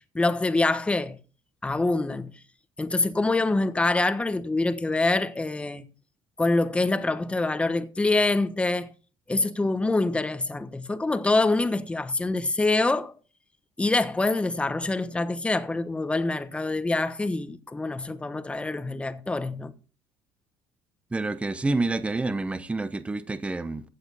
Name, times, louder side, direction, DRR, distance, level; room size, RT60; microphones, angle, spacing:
voice 1, 0.1-1.2 1.6-2.3 2.8-5.8 6.4-8.9 9.3-13.1 13.8-19.7, left 2 dB, 15° left, 1.2 m, -25 dB
voice 2, 21.1-23.8, right 3 dB, 15° right, 1.0 m, -28 dB
15.5 x 8.6 x 4.1 m
cardioid pair, 110°, 9 cm